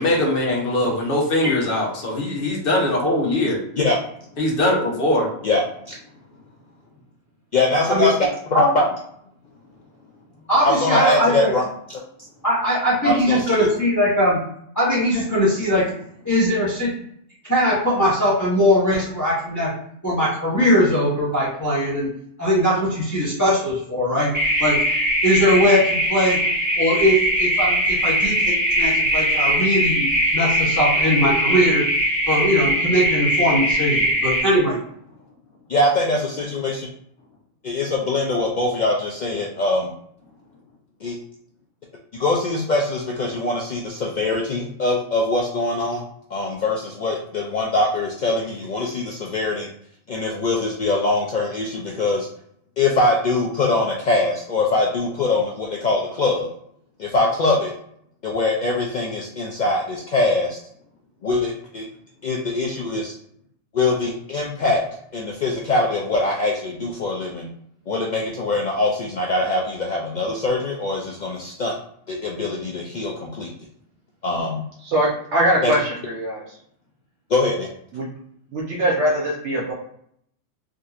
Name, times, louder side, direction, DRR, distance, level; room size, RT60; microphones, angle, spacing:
voice 1, 0.0-3.6 4.4-5.3, left 1 dB, 50° left, -2 dB, 1.0 m, -21 dB
voice 2, 7.5-8.8 10.6-11.6 11.9-12.0 13.0-13.7 35.7-36.9 37.6-39.9 41.0-41.2 42.1-46.0 46.3-49.7 50.1-52.3 52.8-56.5 57.0-57.7 58.2-60.6 61.2-61.9 62.2-63.1 63.7-64.8 65.1-67.5 67.9-71.7 72.1-73.5 74.2-74.6 75.6-75.7 77.3-77.7, left 2 dB, 70° left, -2 dB, 0.4 m, -22 dB
voice 3, 10.5-11.5 12.4-14.4 14.7-15.9 16.2-16.9 17.5-19.7 20.0-22.1 22.4-24.3 24.6-24.8 25.2-26.4 26.8-30.0 30.3-31.8 32.3-34.8, equal, 15° left, -8 dB, 0.9 m, -20 dB
sound 1, 24.3-34.4, equal, 20° right, 0.8 m, -21 dB
voice 4, 74.8-76.4 77.9-78.1 78.5-79.7, right 1 dB, 70° right, -4 dB, 1.0 m, -22 dB
3.7 x 2.6 x 2.4 m, 0.68 s
omnidirectional pair, 1.3 m